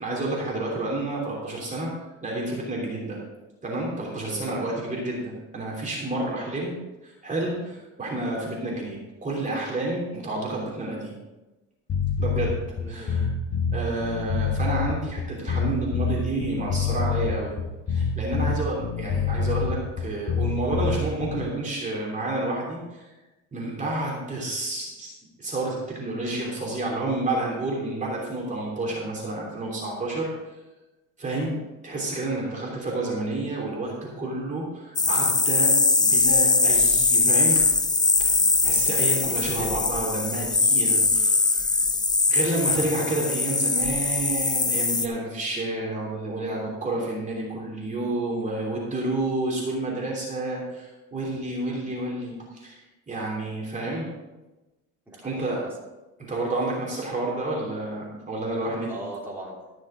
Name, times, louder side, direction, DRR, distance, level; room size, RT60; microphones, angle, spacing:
voice 1, 0.0-1.9 2.2-3.2 3.6-6.8 7.0-11.1 12.2-13.2 13.7-17.6 17.9-23.1 23.5-25.1 25.4-30.5 31.2-37.7 38.2-38.3 38.6-41.8 42.3-52.8 53.1-54.1 55.2-55.6 56.2-58.9, right 2 dB, 25° right, -4 dB, 3.1 m, -30 dB
voice 2, 4.2-4.6 12.8-13.3 32.4-32.7 38.6-38.9 39.5-39.9 51.6-51.9 55.1-55.7 58.9-59.7, right 1 dB, 5° right, -6 dB, 3.3 m, -40 dB
sound 1, 11.9-21.5, left 5 dB, 40° left, 1.4 m, -26 dB
sound 2, 35.0-45.1, left 3 dB, 10° left, 0.7 m, -21 dB
14.0 x 6.3 x 5.0 m, 1.1 s
supercardioid pair, 115°, 33 cm